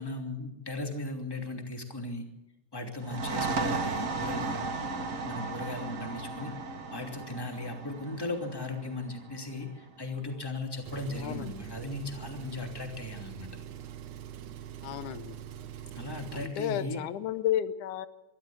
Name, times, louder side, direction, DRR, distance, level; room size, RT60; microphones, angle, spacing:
voice 1, 0.0-2.2 2.7-13.5 15.9-17.0, left 2 dB, 10° left, 4 dB, 2.5 m, -37 dB
sound 1, 3.0-10.4, right 3 dB, 40° right, 1.2 m, -35 dB
Engine, 10.8-16.6, right 10 dB, 85° right, 2.4 m, -43 dB
voice 2, 11.2-11.6 14.8-15.4 16.3-18.1, left 11 dB, 85° left, 13 dB, 2.3 m, -32 dB
23.0 x 13.0 x 8.8 m, 0.97 s
omnidirectional pair, 3.4 m